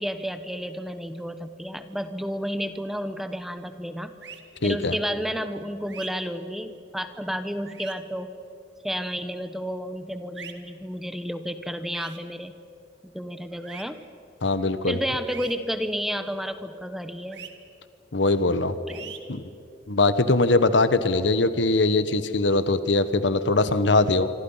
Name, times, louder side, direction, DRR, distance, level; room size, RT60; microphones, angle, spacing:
voice 1, 0.0-4.1 4.6-8.3 8.8-12.5 13.0-14.0 14.9-17.5 18.9-19.1, equal, ahead, 10 dB, 1.0 m, -31 dB
sound 1, 4.2-4.4 5.9-6.1 7.7-7.9 10.3-10.5 11.9-12.2 13.6-13.8 15.3-15.5 17.3-17.5 18.9-19.2, right 8 dB, 75° right, 2.0 m, -41 dB
voice 2, 4.6-4.9 14.4-15.0 18.1-18.7 19.3-19.4 19.9-24.3, left 2 dB, 80° left, 12 dB, 1.2 m, -21 dB
26.5 x 25.5 x 5.7 m, 2.7 s
head